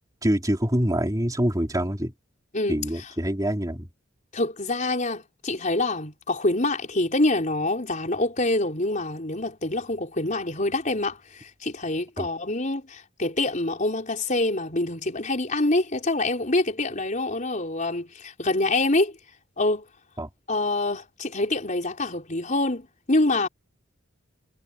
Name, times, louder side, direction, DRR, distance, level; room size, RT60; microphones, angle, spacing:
voice 1, 0.2-2.1 2.7-3.9 12.2-12.3 20.2-20.3, equal, 20° right, 3.4 m, -25 dB
voice 2, 4.3-19.1 19.6-19.8 20.5-23.5, left 2 dB, 40° left, 4.6 m, -26 dB
head